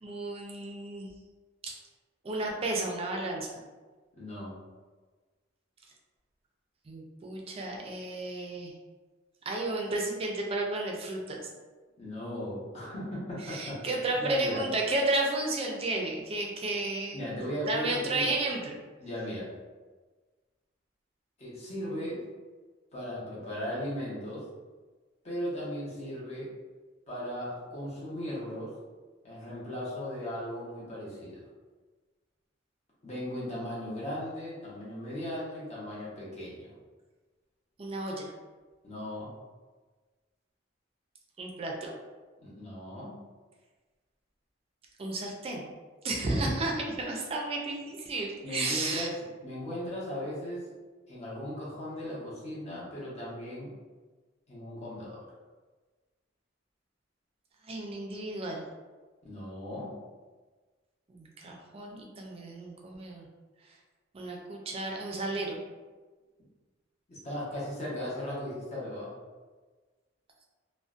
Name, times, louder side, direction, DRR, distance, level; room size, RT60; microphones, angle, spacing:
voice 1, 0.0-1.1 1.6-1.7 2.2-3.5 6.9-8.7 9.5-11.5 13.5-17.3 17.7-18.8 37.8-38.3 41.4-41.9 45.0-45.6 46.0-49.1 57.6-58.6 61.1-63.3 64.1-65.6, right 2 dB, 30° right, 0 dB, 0.4 m, -32 dB
voice 2, 4.1-4.5 12.0-13.8 14.2-14.6 17.1-18.3 19.0-19.5 21.4-22.2 22.9-24.4 25.2-26.5 27.1-28.7 29.2-31.4 33.0-36.7 38.8-39.3 42.4-43.2 46.3-46.4 48.4-49.2 49.4-50.7 51.1-53.7 54.5-55.2 59.2-60.0 67.1-69.1, left 1 dB, 35° left, -7 dB, 0.8 m, -37 dB
2.5 x 2.1 x 2.4 m, 1.3 s
head